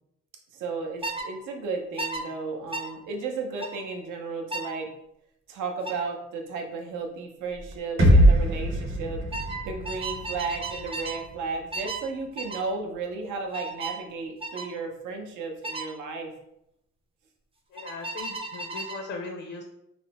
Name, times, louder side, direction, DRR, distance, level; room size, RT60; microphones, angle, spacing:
voice 1, 0.5-4.9 5.5-9.2 9.6-16.3, right 4 dB, 85° right, 2 dB, 0.6 m, -34 dB
sound 1, 1.0-1.3 2.0-2.2 2.7-2.9 3.6-3.8 4.5-4.7 5.8-6.1 7.5-7.8 8.0-8.4 9.3-11.2 11.7-12.1 12.4-12.7 13.5-14.0 14.4-14.7 15.6-15.9 17.8-19.0, right 3 dB, 20° right, 0.4 m, -35 dB
sound 2, 8.0-11.9, equal, 45° right, 1.0 m, -23 dB
voice 2, 17.7-19.6, left 3 dB, 55° left, 3 dB, 0.5 m, -38 dB
3.2 x 2.1 x 2.8 m, 0.81 s
cardioid pair, 90°, 30 cm